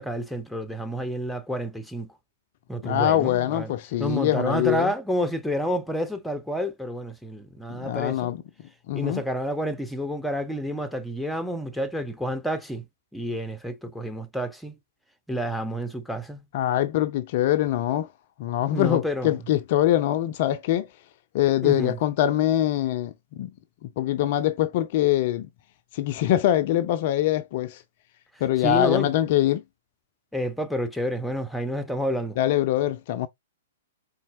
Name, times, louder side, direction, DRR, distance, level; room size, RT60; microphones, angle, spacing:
voice 1, 0.0-2.1 2.7-3.7 4.0-8.3 8.9-12.9 13.1-14.7 15.3-16.4 18.7-19.4 21.6-22.0 28.6-29.1 30.3-32.4, equal, ahead, 0.6 m, -29 dB
voice 2, 2.8-4.9 7.7-8.4 8.9-9.2 16.5-18.1 18.4-20.9 21.3-23.5 24.0-25.5 25.9-27.8 28.4-29.6 32.4-33.3, left 13 dB, 45° left, 0.4 m, -23 dB
4.2 x 3.8 x 2.5 m
figure-of-eight pair, 110°, 0 cm